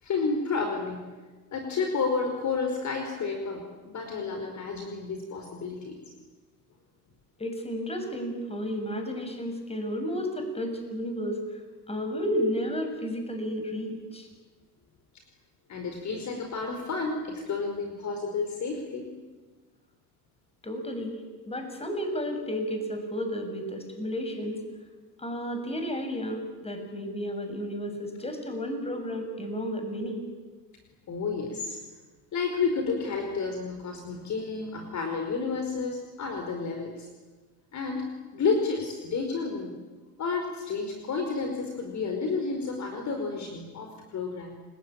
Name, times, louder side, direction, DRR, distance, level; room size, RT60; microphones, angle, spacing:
voice 1, 0.0-1.0 1.5-6.0 15.7-19.2 31.1-31.8 32.3-37.1 37.7-39.7 40.2-44.6, left 4 dB, 35° left, 4 dB, 4.9 m, -31 dB
voice 2, 7.4-11.4 11.9-14.3 20.6-21.1 21.5-24.6 25.2-30.3, equal, 15° left, 5 dB, 7.2 m, -32 dB
29.5 x 21.0 x 8.9 m, 1.3 s
hypercardioid pair, 80°, 46 cm